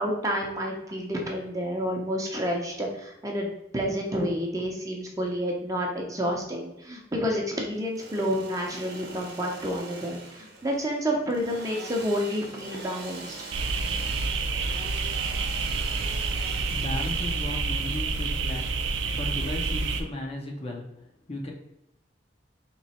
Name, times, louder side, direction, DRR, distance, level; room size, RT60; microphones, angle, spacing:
voice 1, 0.0-13.3, equal, 20° right, 0 dB, 0.7 m, -29 dB
Engine / Sawing, 7.7-19.4, right 3 dB, 60° right, 0.8 m, -43 dB
sound 1, 13.5-20.0, right 4 dB, 80° right, 0.5 m, -28 dB
voice 2, 16.7-21.5, left 1 dB, 30° left, 0 dB, 0.6 m, -36 dB
3.2 x 3.1 x 4.2 m, 0.85 s
head